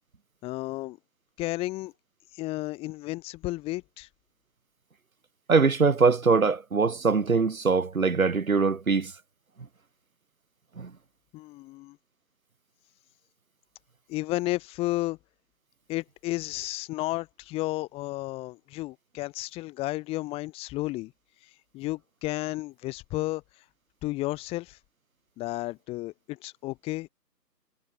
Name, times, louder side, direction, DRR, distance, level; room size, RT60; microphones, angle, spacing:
voice 1, 0.4-1.0 1.4-1.9 2.3-4.1 11.3-12.0 14.1-15.2 15.9-21.1 21.7-23.4 24.0-24.8 25.4-27.1, left 19 dB, 10° left, 5.4 m, -32 dB
voice 2, 5.5-9.1 10.8-10.9, right 4 dB, 55° right, 6.1 m, -22 dB
figure-of-eight pair, 150°, 50 cm